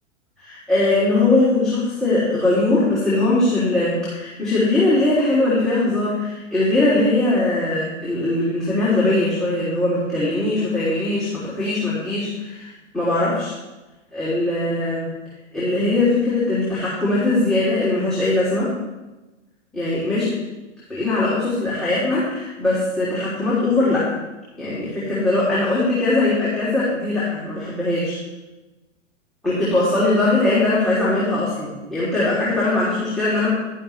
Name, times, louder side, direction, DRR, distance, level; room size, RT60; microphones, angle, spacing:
voice 1, 0.4-13.5 14.1-15.1 15.5-18.7 19.7-20.4 20.9-24.1 24.6-28.2 29.4-33.5, left 2 dB, ahead, -11 dB, 3.2 m, -20 dB
12.0 x 11.0 x 3.3 m, 1.1 s
figure-of-eight pair, 110°, 38 cm